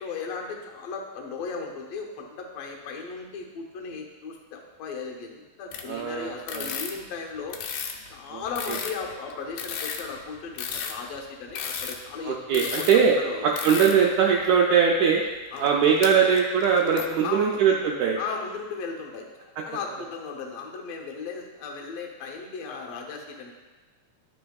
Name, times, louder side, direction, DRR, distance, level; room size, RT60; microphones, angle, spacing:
voice 1, 0.0-7.6 8.1-13.5 15.5-15.7 17.2-17.6 18.2-23.5, left 5 dB, 70° left, 1 dB, 1.7 m, -36 dB
sound 1, 5.7-6.0 6.4-8.1 8.5-13.0 13.5-14.0 14.4-14.5 15.5-16.1 16.4-17.2, left 7 dB, 85° left, 2.1 m, -34 dB
voice 2, 5.9-6.8 8.3-8.4 8.7-8.8 12.2-13.1 13.4-15.2 15.6-18.2, right 7 dB, 80° right, -1 dB, 1.7 m, -21 dB
12.0 x 4.3 x 2.3 m, 1.2 s
omnidirectional pair, 3.7 m